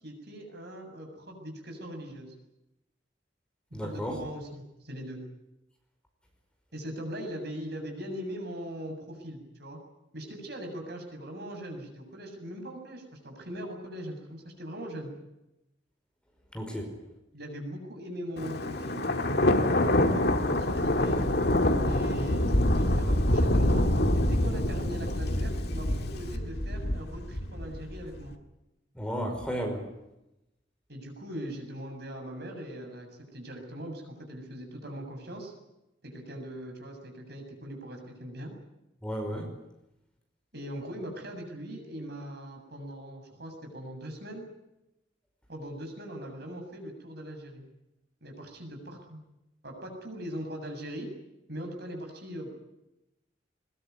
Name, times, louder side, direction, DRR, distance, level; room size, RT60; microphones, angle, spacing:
voice 1, 0.0-2.3 3.8-5.2 6.7-9.8 10.1-15.1 17.3-21.4 21.8-23.8 24.1-28.3 30.9-35.5 36.0-38.5 40.5-44.5 45.5-47.7 48.2-49.2 49.6-51.1 51.5-52.7, equal, 60° right, 4 dB, 7.3 m, -40 dB
voice 2, 3.7-4.2 16.5-16.9 28.9-29.8 39.0-39.5, equal, 5° left, 3 dB, 5.2 m, -33 dB
Thunder, 18.4-28.2, left 1 dB, 60° left, 2.2 m, -26 dB
22.0 x 21.5 x 9.5 m, 0.92 s
head